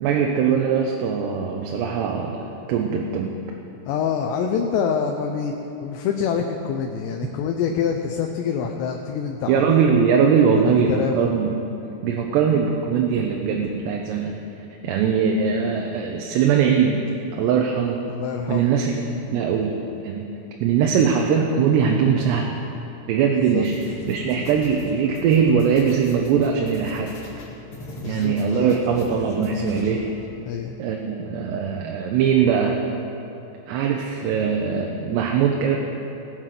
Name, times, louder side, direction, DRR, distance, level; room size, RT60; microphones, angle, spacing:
voice 1, 0.0-3.4 9.5-11.7 12.0-14.3 14.8-17.0 17.4-18.0 18.5-18.9 19.3-19.8 20.0-20.2 20.6-22.6 23.1-23.8 24.1-27.2 28.0-30.1 30.8-32.8 33.7-35.8, right 6 dB, 90° right, 1 dB, 3.0 m, -21 dB
voice 2, 3.9-5.5 5.8-9.6 10.6-11.3 18.1-18.8 23.5-23.7 28.0-28.8 30.5-30.8, left 7 dB, 90° left, 3 dB, 2.9 m, -26 dB
sound 1, 23.6-30.3, left 1 dB, 40° left, 2.2 m, -40 dB
19.0 x 7.9 x 5.9 m, 2.9 s
omnidirectional pair, 4.8 m